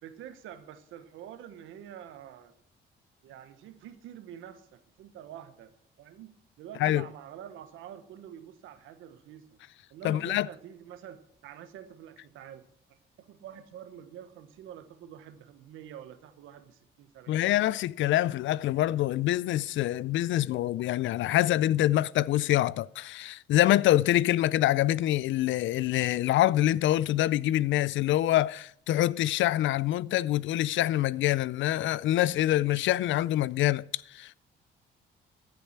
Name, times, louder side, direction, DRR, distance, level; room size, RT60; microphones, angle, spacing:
voice 1, 0.0-2.5 3.2-5.7 6.0-9.6 9.9-17.6, right 10 dB, 90° right, 1.2 m, -47 dB
voice 2, 10.0-10.5 17.3-34.3, left 14 dB, 75° left, 0.4 m, -25 dB
14.5 x 6.9 x 4.5 m
cardioid pair, 90°, 20 cm